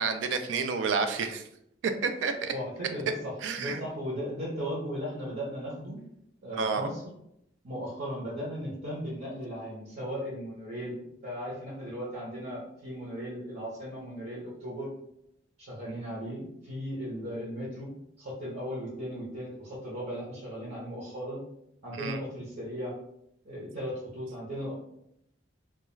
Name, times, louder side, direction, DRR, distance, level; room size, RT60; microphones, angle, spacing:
voice 1, 0.0-1.4 1.8-2.5 3.4-3.8 6.5-6.9 15.9-16.0 21.9-22.2, right 5 dB, 90° right, 7 dB, 0.3 m, -30 dB
voice 2, 2.5-6.0 6.4-7.0 7.6-14.9 15.6-17.9 18.2-21.4 21.8-22.9 23.4-24.7, equal, 60° right, -6 dB, 0.8 m, -37 dB
2.3 x 2.3 x 3.0 m, 0.77 s
head